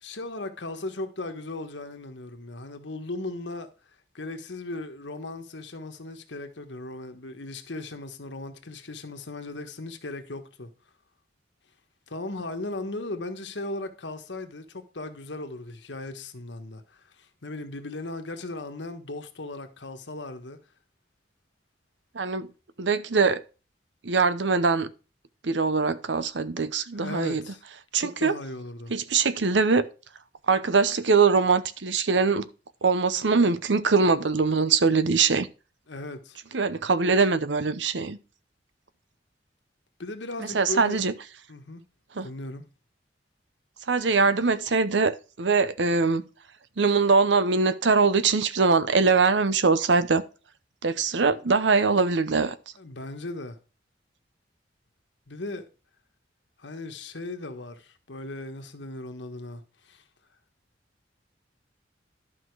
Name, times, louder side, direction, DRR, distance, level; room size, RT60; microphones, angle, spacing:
voice 1, 0.0-3.7 4.1-10.7 12.1-20.6 26.9-27.6 27.9-28.9 35.9-36.4 40.0-41.0 41.5-41.8 42.2-42.6 52.8-53.6 55.3-55.6 56.6-60.0, left 2 dB, 80° left, 1.3 m, -37 dB
voice 2, 22.1-22.5 22.8-23.4 24.0-24.9 25.4-27.4 27.9-28.3 28.9-29.9 30.5-32.5 32.8-35.5 36.5-38.2 40.4-41.1 42.1-42.3 43.9-46.2 46.8-50.2 50.8-52.6, right 4 dB, 80° right, 0.8 m, -22 dB
12.0 x 5.8 x 4.7 m
head